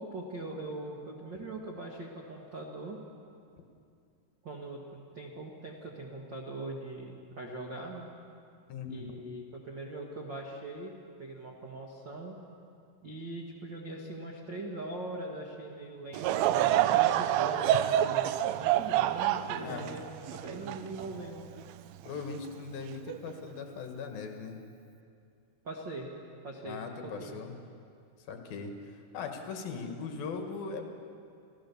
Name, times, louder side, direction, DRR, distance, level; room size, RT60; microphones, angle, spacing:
voice 1, 0.0-3.0 4.4-4.8 5.1-8.1 8.9-10.9 11.2-12.4 13.0-20.0 20.3-21.5 25.6-26.1 26.4-27.4, right 2 dB, 70° right, 0 dB, 1.0 m, -41 dB
voice 2, 8.7-9.2 19.5-19.8 22.0-24.6 26.7-27.5 28.3-30.9, left 5 dB, 65° left, 4 dB, 3.1 m, -39 dB
Laughter / Crowd, 16.1-21.6 22.2-22.3 23.1-23.3, right 12 dB, 90° right, 2.9 m, -27 dB
28.0 x 15.5 x 7.1 m, 2.5 s
omnidirectional pair, 4.9 m